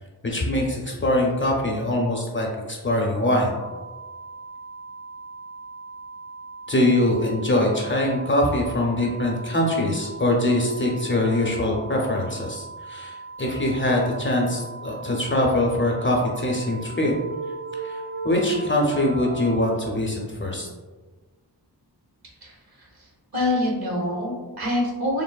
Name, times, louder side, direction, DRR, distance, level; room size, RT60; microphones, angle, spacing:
voice 1, 0.2-3.6 6.7-17.1 17.8-20.7, left 1 dB, 30° left, -2 dB, 0.5 m, -23 dB
sound 1, 3.6-19.6, right 3 dB, 35° right, 0.4 m, -40 dB
sound 2, 10.2-12.5 14.3-19.5, right 3 dB, 85° right, 1.4 m, -39 dB
voice 2, 22.4-22.9 23.3-25.2, left 1 dB, 60° right, -2 dB, 1.0 m, -26 dB
3.1 x 2.0 x 2.2 m, 1.3 s
wide cardioid pair, 60°, 42 cm